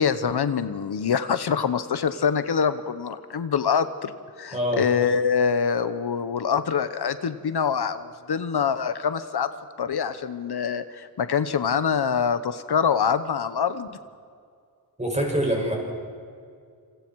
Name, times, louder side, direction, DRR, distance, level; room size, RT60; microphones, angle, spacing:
voice 1, 0.0-9.5 9.8-13.9, left 6 dB, 85° left, 12 dB, 1.0 m, -25 dB
voice 2, 4.5-4.9 15.0-15.7, equal, 20° right, -1 dB, 7.2 m, -24 dB
27.5 x 27.0 x 4.8 m, 2.2 s
wide cardioid pair, 100°, 38 cm